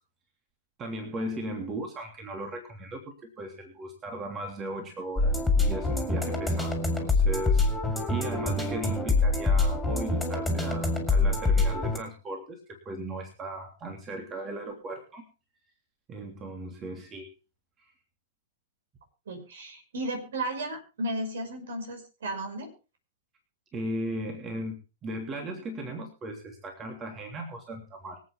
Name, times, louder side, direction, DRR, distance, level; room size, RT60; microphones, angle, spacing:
voice 1, 0.8-7.7 8.1-15.2 16.1-17.3 17.8-17.9 23.7-24.7 25.0-28.2, right 1 dB, 25° right, 3 dB, 3.1 m, -37 dB
sound 1, 5.2-12.0, left 3 dB, 5° left, 4.1 m, -25 dB
voice 2, 19.3-22.7, right 1 dB, 60° right, 5 dB, 5.8 m, -34 dB
24.5 x 8.8 x 3.5 m, 0.31 s
figure-of-eight pair, 105°, 0 cm